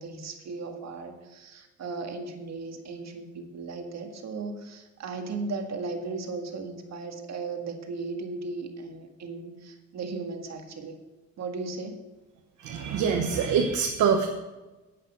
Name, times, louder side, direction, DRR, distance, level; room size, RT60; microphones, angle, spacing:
voice 1, 0.0-11.0 11.4-12.0, right 3 dB, 60° right, 4 dB, 1.9 m, -36 dB
voice 2, 12.6-14.3, right 6 dB, 80° right, 4 dB, 1.2 m, -24 dB
10.0 x 8.7 x 6.2 m, 1.1 s
cardioid pair, 90°, 30 cm